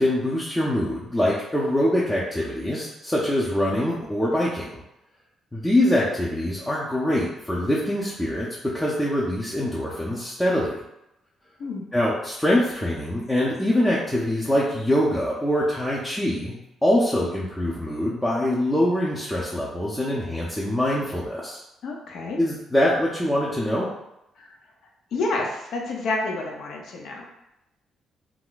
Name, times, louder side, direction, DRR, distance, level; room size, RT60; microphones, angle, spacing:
voice 1, 0.0-4.8 5.5-8.5 8.7-10.8 11.9-16.6 16.8-21.6 22.4-23.9, left 1 dB, 10° left, -6 dB, 0.6 m, -24 dB
voice 2, 21.8-22.4 24.4-24.5 25.1-27.2, left 2 dB, 70° left, 0 dB, 0.7 m, -29 dB
2.3 x 2.1 x 3.9 m, 0.87 s
cardioid pair, 90°, 0 cm